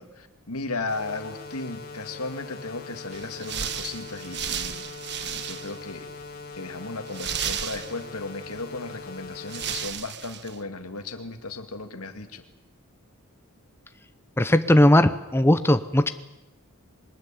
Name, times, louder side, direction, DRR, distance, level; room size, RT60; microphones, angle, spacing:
voice 1, 0.0-4.9 5.2-6.1 6.5-12.4, left 3 dB, 80° left, 7 dB, 2.2 m, -35 dB
sound 1, 0.9-9.9, left 4 dB, 45° left, 3.7 m, -41 dB
sound 2, 3.1-5.9 6.2-6.3 7.1-8.3 9.1-9.2 9.5-10.6, right 8 dB, 50° right, 1.4 m, -33 dB
voice 2, 14.4-16.1, left 1 dB, 10° left, 10 dB, 0.8 m, -18 dB
23.0 x 20.0 x 9.0 m, 0.97 s
head